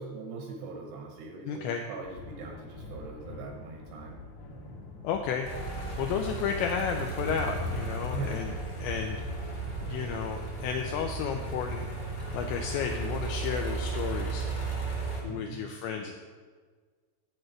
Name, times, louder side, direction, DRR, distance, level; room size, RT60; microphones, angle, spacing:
voice 1, 0.0-4.2 8.1-8.5 15.2-15.6, right 4 dB, 75° right, 1 dB, 2.5 m, -41 dB
voice 2, 1.5-1.8 5.0-5.5 6.0-8.5 8.8-9.2 9.8-11.9 12.3-14.4 15.2-16.1, left 7 dB, 85° left, 4 dB, 2.6 m, -32 dB
sound 1, 2.0-14.2, left 3 dB, 65° left, 3.3 m, -44 dB
sound 2, 5.4-15.2, right 3 dB, 25° left, 0.8 m, -35 dB
11.0 x 4.4 x 7.8 m, 1.5 s
omnidirectional pair, 5.9 m